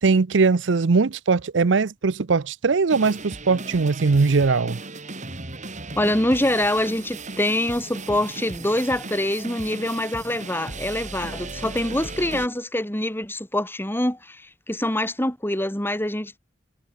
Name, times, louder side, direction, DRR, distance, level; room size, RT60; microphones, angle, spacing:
voice 1, 0.0-4.8, right 4 dB, 85° right, 0.6 m, -20 dB
Chiptuned ROck Music, 2.9-12.5, right 3 dB, 45° right, 6.3 m, -36 dB
voice 2, 5.9-14.4 14.7-16.4, left 1 dB, 10° left, 3.8 m, -25 dB
head